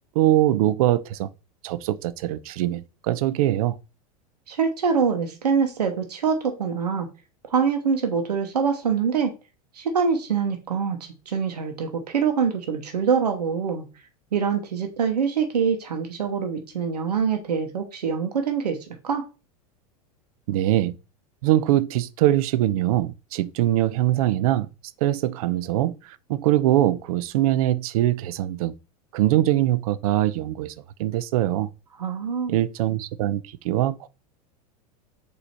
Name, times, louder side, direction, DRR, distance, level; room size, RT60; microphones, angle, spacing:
voice 1, 0.2-1.3 1.6-3.8 20.5-21.0 21.4-24.7 25.0-25.9 26.3-28.7 29.1-30.7 31.0-31.7 32.5-34.1, right 14 dB, 65° right, 0.5 m, -22 dB
voice 2, 4.5-7.1 7.5-9.3 9.7-11.0 11.3-13.9 14.3-18.8 19.0-19.3 32.0-32.6, right 6 dB, 85° right, 0.8 m, -24 dB
4.2 x 2.7 x 4.4 m
hypercardioid pair, 95°, 20 cm